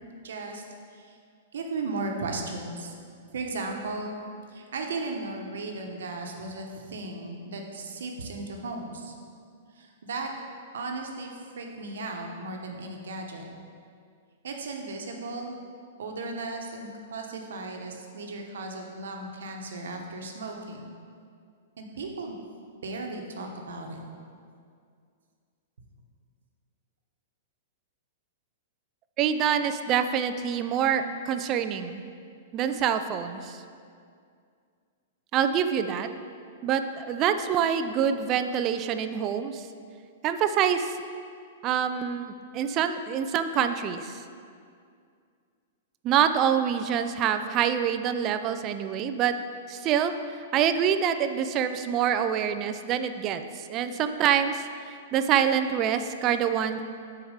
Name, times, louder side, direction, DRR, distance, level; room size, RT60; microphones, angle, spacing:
voice 1, 0.2-0.6 0.9-1.2 1.5-2.9 3.3-4.1 4.5-9.1 9.8-10.3 10.7-13.5 14.4-15.5 16.0-20.8 21.8-22.4 22.8-24.0, right 3 dB, 85° right, 2 dB, 1.1 m, -36 dB
voice 2, 29.2-32.0 32.5-33.6 35.3-36.1 36.6-39.7 40.2-41.0 41.6-42.3 42.5-44.2 46.0-49.3 49.7-50.1 50.5-54.6 55.1-56.8, right 8 dB, 30° right, 9 dB, 0.4 m, -26 dB
6.3 x 4.7 x 6.5 m, 2.3 s
hypercardioid pair, 155°, 0 cm